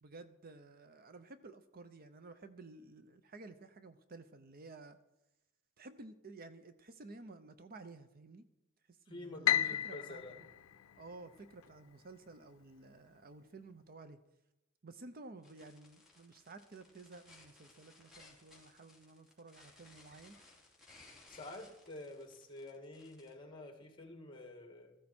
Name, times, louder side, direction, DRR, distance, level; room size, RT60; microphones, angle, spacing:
voice 1, 0.0-5.0 5.8-8.4 8.9-10.5 11.0-14.2 14.8-20.4, right 3 dB, 45° right, 11 dB, 0.7 m, -53 dB
voice 2, 9.1-10.4 21.3-25.0, left 2 dB, 25° left, 4 dB, 2.1 m, -49 dB
Piano, 9.5-11.7, left 11 dB, 85° left, 0.5 m, -34 dB
sound 1, 15.4-23.3, left 2 dB, ahead, 3.1 m, -61 dB
14.5 x 14.0 x 4.4 m, 0.95 s
head